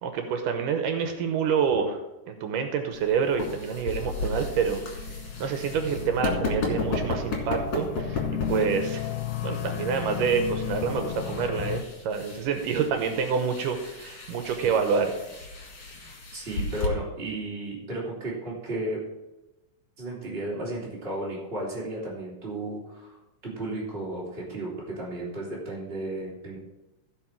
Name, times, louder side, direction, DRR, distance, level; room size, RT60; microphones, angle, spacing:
voice 1, 0.0-2.0 2.3-5.0 5.4-9.1 9.4-15.1, right 6 dB, 85° right, 5 dB, 2.5 m, -27 dB
sound 1, 2.9-16.9, left 3 dB, 45° left, 2.7 m, -34 dB
sound 2, 4.7-11.8, left 12 dB, 80° left, 2.2 m, -34 dB
voice 2, 16.3-19.0 20.0-23.2 23.4-26.6, right 1 dB, 20° right, -6 dB, 3.4 m, -34 dB
15.5 x 5.3 x 4.6 m, 1.0 s
omnidirectional pair, 3.7 m